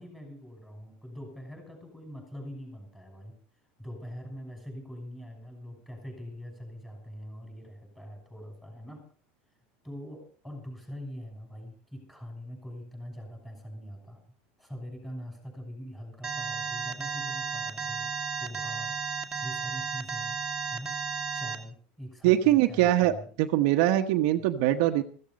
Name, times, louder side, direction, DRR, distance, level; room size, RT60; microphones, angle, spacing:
voice 1, 0.0-3.4 3.8-9.0 9.8-14.2 14.6-18.1 18.4-18.9 19.4-20.4 20.7-21.0 21.3-23.3, equal, 5° left, 2 dB, 6.6 m, -43 dB
Alarm, 16.2-21.6, right 6 dB, 15° right, 2.0 m, -33 dB
voice 2, 22.2-23.1 23.4-25.0, right 14 dB, 60° right, 5 dB, 1.2 m, -22 dB
15.5 x 14.5 x 5.3 m, 0.42 s
supercardioid pair, 160°, 5 cm